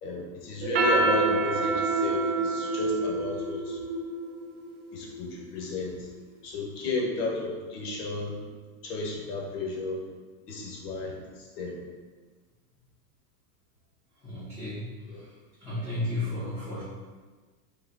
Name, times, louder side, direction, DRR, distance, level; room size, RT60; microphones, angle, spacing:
voice 1, 0.0-3.8 4.9-6.1 6.4-8.4 8.8-10.0 10.5-11.8 15.1-15.2, left 3 dB, 85° left, -1 dB, 1.3 m, -33 dB
sound 1, 0.6-5.4, right 3 dB, 45° right, 0.5 m, -27 dB
voice 2, 14.2-14.9 15.6-16.8, left 2 dB, 15° left, -14 dB, 1.2 m, -32 dB
4.1 x 3.1 x 3.9 m, 1.4 s
supercardioid pair, 180°, 46 cm